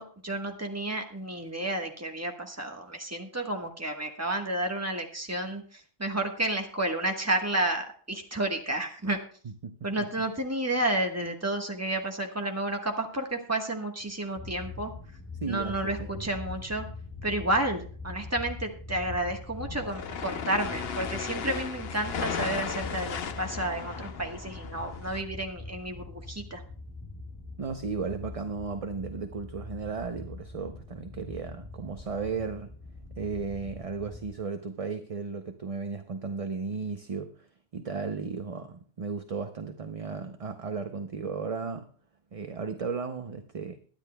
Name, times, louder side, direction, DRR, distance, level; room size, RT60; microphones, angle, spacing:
voice 1, 0.0-9.2 9.8-14.9 15.5-16.8 17.2-26.6, right 1 dB, 15° right, 2 dB, 1.3 m, -31 dB
sound 1, 14.4-34.3, left 3 dB, 15° left, 3.6 m, -42 dB
voice 2, 15.4-16.3 27.6-32.7 33.2-37.5 37.7-41.8 42.3-43.8, right 5 dB, 40° right, 7 dB, 0.7 m, -35 dB
sound 2, 19.6-25.2, left 6 dB, 70° left, 1.0 m, -36 dB
22.0 x 10.0 x 2.2 m, 0.43 s
omnidirectional pair, 1.1 m